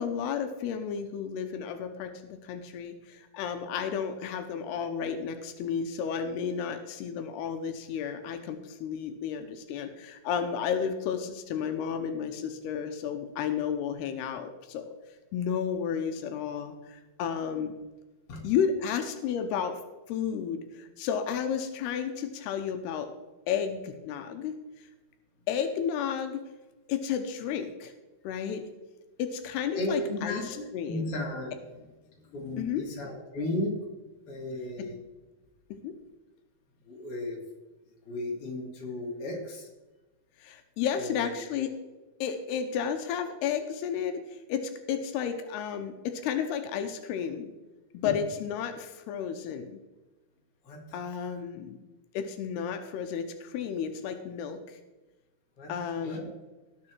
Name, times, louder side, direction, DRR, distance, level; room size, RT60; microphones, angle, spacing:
voice 1, 0.0-14.9 15.3-17.8 18.4-19.8 20.1-23.1 23.5-24.6 25.5-26.4 26.9-27.9 28.2-28.6 29.2-31.1 32.6-32.8 34.8-34.9 35.8-35.9 40.4-41.7 42.2-47.5 47.9-49.8 50.9-51.8 52.1-54.6 55.7-56.3, left 7 dB, 85° left, 7 dB, 2.9 m, -32 dB
voice 2, 29.7-31.5 32.3-33.8 34.3-35.0 36.8-37.4 38.0-39.7 40.9-41.3 48.0-48.1 50.6-51.4 53.9-54.0 55.6-55.7 56.0-56.3, left 2 dB, 40° left, -1 dB, 3.1 m, -35 dB
18.0 x 6.7 x 4.5 m, 1.1 s
omnidirectional pair, 4.6 m